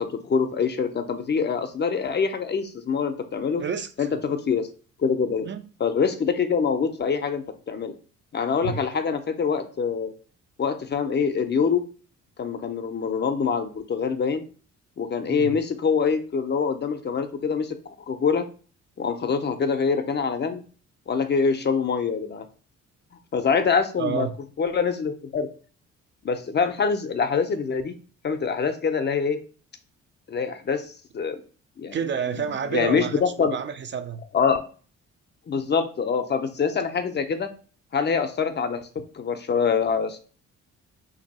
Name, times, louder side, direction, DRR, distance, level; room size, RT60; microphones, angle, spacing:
voice 1, 0.0-3.6 4.0-4.7 5.0-5.5 5.8-7.9 8.3-10.1 10.6-11.8 12.4-14.4 15.0-17.7 18.1-18.5 19.0-20.6 21.1-22.5 23.3-24.3 24.6-25.5 26.2-27.9 28.2-29.4 30.3-31.4 31.8-32.0 32.4-33.5 34.3-34.6 35.5-37.5 37.9-38.8 39.1-40.2, left 6 dB, 35° left, 0.5 m, -25 dB
voice 2, 3.6-4.1 5.4-5.7 8.6-8.9 15.3-15.6 24.0-24.4 31.9-34.2, right 7 dB, 40° right, 0.4 m, -30 dB
2.9 x 2.7 x 4.0 m
cardioid pair, 90°, 30 cm